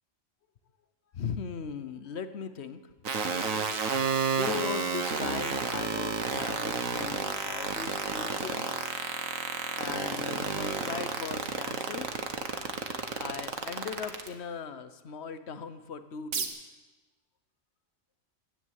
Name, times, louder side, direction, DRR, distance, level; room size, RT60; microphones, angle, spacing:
voice 1, 1.1-2.8 4.3-8.7 9.7-12.1 13.2-16.7, left 6 dB, 55° left, 11 dB, 1.2 m, -38 dB
sound 1, 3.0-14.3 16.3-16.5, right 5 dB, 80° right, 1.8 m, -30 dB
16.5 x 10.5 x 8.2 m, 1.2 s
omnidirectional pair, 1.4 m